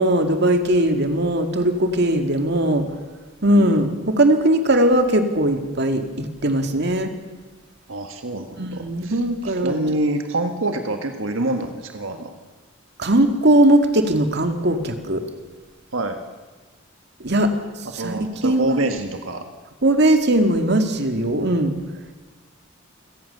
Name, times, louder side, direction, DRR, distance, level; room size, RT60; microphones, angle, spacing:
voice 1, 0.0-2.9 3.4-7.1 8.5-9.8 13.0-15.2 17.2-17.5 17.9-18.8 19.8-21.8, right 1 dB, 55° right, 6 dB, 2.2 m, -19 dB
voice 2, 7.9-12.3 15.9-16.2 17.9-19.5, right 2 dB, 85° right, 5 dB, 1.8 m, -26 dB
28.5 x 17.5 x 6.9 m, 1.3 s
head